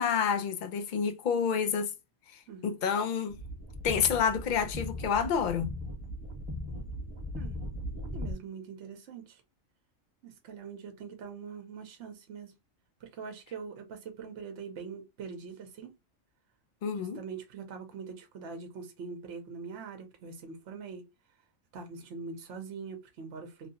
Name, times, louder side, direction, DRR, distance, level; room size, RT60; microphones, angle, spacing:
voice 1, 0.0-1.9 2.6-3.4 3.8-5.7 16.8-17.2, left 7 dB, 65° left, 0.4 m, -28 dB
sound 1, 3.3-8.3, left 1 dB, 30° right, 0.9 m, -38 dB
voice 2, 8.1-9.4 10.2-12.5 13.0-15.9 17.0-21.0 21.7-23.7, right 5 dB, 65° right, 1.0 m, -43 dB
3.0 x 2.7 x 2.6 m
omnidirectional pair, 1.4 m